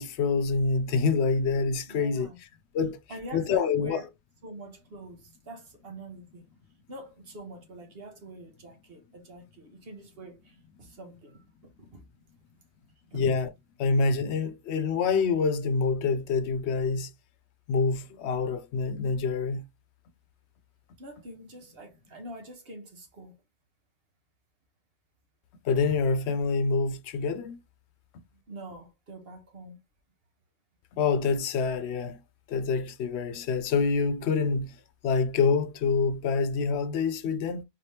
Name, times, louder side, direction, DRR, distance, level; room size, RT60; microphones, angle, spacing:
voice 1, 0.0-2.3 2.7-3.0 3.3-4.0 13.1-13.5 13.8-17.1 17.7-19.6 25.6-27.6 30.9-32.2 32.5-34.8 35.0-37.6, left 4 dB, 85° left, 0.8 m, -26 dB
voice 2, 1.9-2.4 3.1-4.1 4.4-6.5 6.9-12.0 13.1-13.2 21.0-23.3 28.3-29.8, right 1 dB, 65° right, 1.4 m, -45 dB
4.0 x 3.3 x 2.8 m
omnidirectional pair, 1.1 m